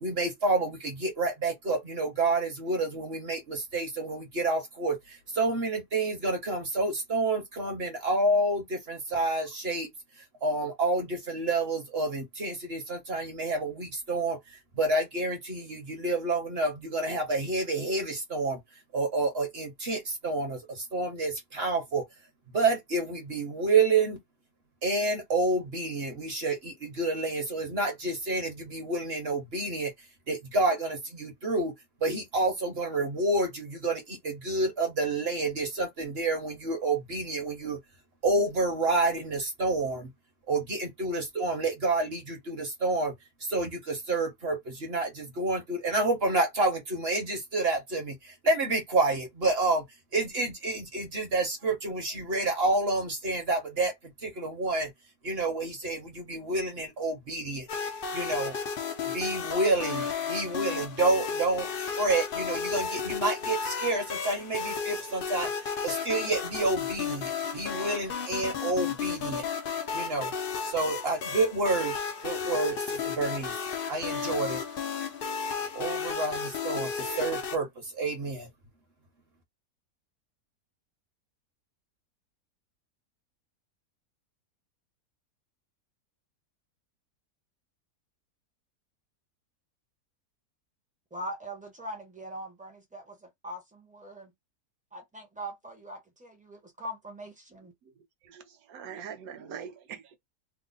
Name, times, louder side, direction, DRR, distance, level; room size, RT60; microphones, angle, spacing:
voice 1, 0.0-9.9 10.4-18.6 18.9-22.0 22.5-24.2 24.8-29.9 30.3-31.7 32.0-37.8 38.2-40.1 40.5-43.1 43.4-49.8 50.1-53.9 54.2-54.9 55.2-57.7 58.1-58.6 59.1-69.4 69.9-70.3 70.6-71.9 72.2-73.6 73.9-74.6 75.7-78.5, right 2 dB, 45° right, 1.0 m, -29 dB
sound 1, 57.7-77.6, left 6 dB, 70° left, 0.5 m, -33 dB
voice 2, 91.1-94.3 94.9-97.7, right 1 dB, 10° right, 0.5 m, -41 dB
voice 3, 98.2-100.2, right 7 dB, 70° right, 1.2 m, -43 dB
3.1 x 2.0 x 3.8 m
omnidirectional pair, 1.7 m